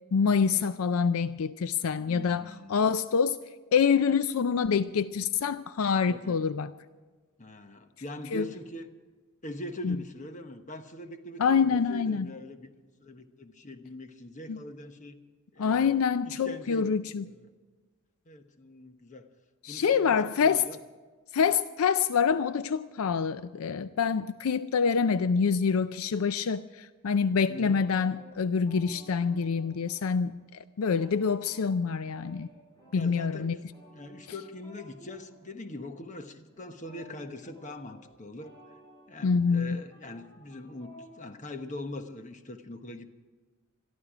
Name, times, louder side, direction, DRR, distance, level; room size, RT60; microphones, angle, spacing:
voice 1, 0.1-3.4 3.7-6.7 8.3-8.5 9.8-10.0 11.4-12.3 14.5-14.6 15.6-17.2 19.6-20.7 21.3-30.4 30.8-32.5 32.9-33.6 39.2-39.8, left 6 dB, 75° left, 13 dB, 0.4 m, -26 dB
voice 2, 2.0-2.8 6.1-6.5 7.4-8.9 9.4-15.2 15.5-16.0 16.2-17.5 18.3-19.3 19.7-20.8 27.5-27.8 32.9-38.5 39.1-43.1, left 1 dB, 35° left, 7 dB, 1.1 m, -42 dB
sound 1, 27.6-30.3 30.6-41.2, equal, 20° left, 7.4 m, -55 dB
22.0 x 13.5 x 4.9 m, 1.4 s
head